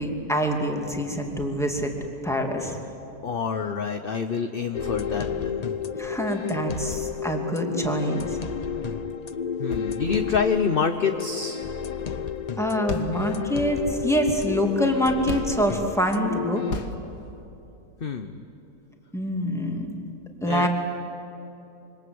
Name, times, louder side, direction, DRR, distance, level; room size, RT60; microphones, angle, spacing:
voice 1, 0.0-1.9 2.2-2.8 5.9-8.4 12.6-16.6 19.1-19.9 20.4-20.7, equal, ahead, 1 dB, 2.5 m, -25 dB
voice 2, 3.2-5.6 9.6-11.7 18.0-18.4 20.5-20.7, left 6 dB, 40° left, 7 dB, 0.9 m, -27 dB
sound 1, 4.7-16.7, left 7 dB, 70° left, 0.3 m, -31 dB
sound 2, 9.6-12.2 12.4-12.5 12.9-15.7 16.7-17.2, left 4 dB, 85° left, 2.0 m, -36 dB
26.5 x 25.0 x 7.9 m, 3.0 s
omnidirectional pair, 1.7 m